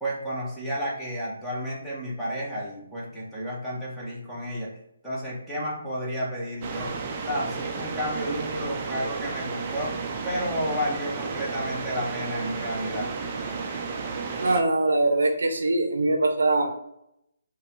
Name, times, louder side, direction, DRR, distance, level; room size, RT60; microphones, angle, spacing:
voice 1, 0.0-4.7 5.0-6.9 7.3-10.0 10.2-13.1, equal, ahead, -8 dB, 1.2 m, -31 dB
sound 1, 6.6-14.6, right 4 dB, 30° right, 0.6 m, -33 dB
voice 2, 14.4-16.7, right 2 dB, 75° right, 5 dB, 0.7 m, -22 dB
3.9 x 2.7 x 4.5 m, 0.80 s
hypercardioid pair, 155°, 0 cm